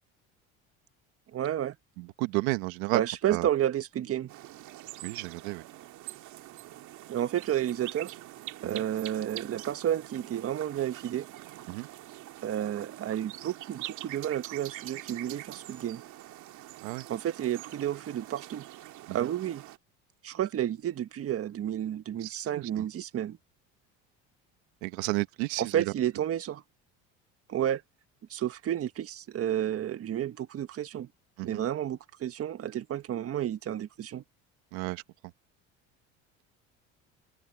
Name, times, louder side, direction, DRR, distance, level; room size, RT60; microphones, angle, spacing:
voice 1, 1.3-1.7 2.9-4.3 7.1-8.1 8.6-11.3 12.4-16.0 17.1-18.7 19.1-19.6 20.2-23.4 25.6-26.6 27.5-27.8 28.3-31.1 31.4-34.2, right 11 dB, 45° right, 1.5 m, -31 dB
voice 2, 2.0-3.0 3.3-3.5 5.0-5.6 8.6-8.8 11.7-11.9 16.8-17.0 19.1-19.2 22.2-22.9 24.8-25.9 31.4-31.6 34.7-35.0, right 23 dB, 80° right, 1.3 m, -32 dB
sound 1, 4.3-19.8, right 15 dB, 65° right, 2.5 m, -45 dB
open air
supercardioid pair, 90°, 32 cm